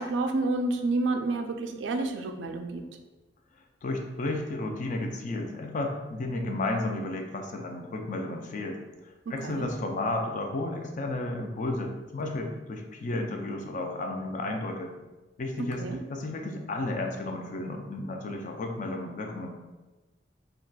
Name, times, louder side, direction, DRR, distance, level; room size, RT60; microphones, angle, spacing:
voice 1, 0.0-2.8 9.4-9.7 15.8-16.0, right 2 dB, 80° right, 6 dB, 0.3 m, -29 dB
voice 2, 3.8-14.9 15.4-15.8 16.1-19.5, left 2 dB, 45° left, 3 dB, 0.4 m, -33 dB
3.8 x 2.3 x 2.2 m, 1.1 s
head